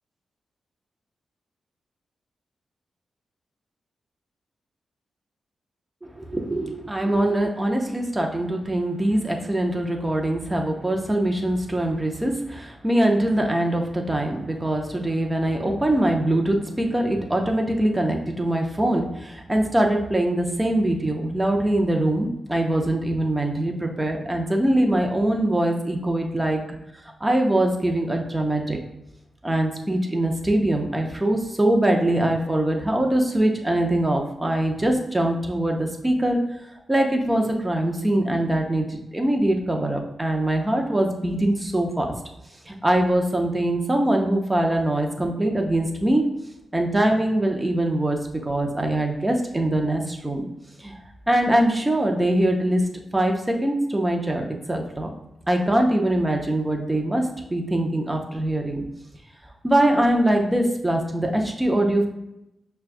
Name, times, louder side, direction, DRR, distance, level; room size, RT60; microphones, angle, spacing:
voice 1, 6.0-26.6 27.2-28.8 29.4-36.4 36.9-38.9 39.1-42.1 42.7-46.2 46.7-48.2 48.4-50.5 50.8-51.0 51.3-52.8 53.1-55.1 55.5-57.2 57.5-58.8 59.6-62.1, right 1 dB, 15° right, 2 dB, 0.6 m, -23 dB
5.9 x 2.2 x 2.5 m, 0.87 s
cardioid pair, 95°, 0 cm